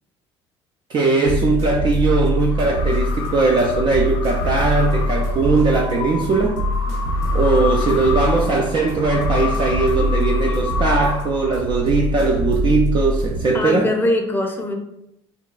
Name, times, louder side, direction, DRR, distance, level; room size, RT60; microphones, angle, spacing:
voice 1, 0.9-6.6 7.3-13.9, right 4 dB, 35° right, 1 dB, 0.4 m, -19 dB
sound 1, 1.2-13.4, left 1 dB, 75° right, 0.7 m, -23 dB
sound 2, 2.1-11.9, left 6 dB, 70° left, 0.5 m, -31 dB
voice 2, 13.5-14.8, left 2 dB, 15° left, 2 dB, 0.6 m, -21 dB
3.7 x 2.2 x 2.3 m, 0.80 s
hypercardioid pair, 75°, 14 cm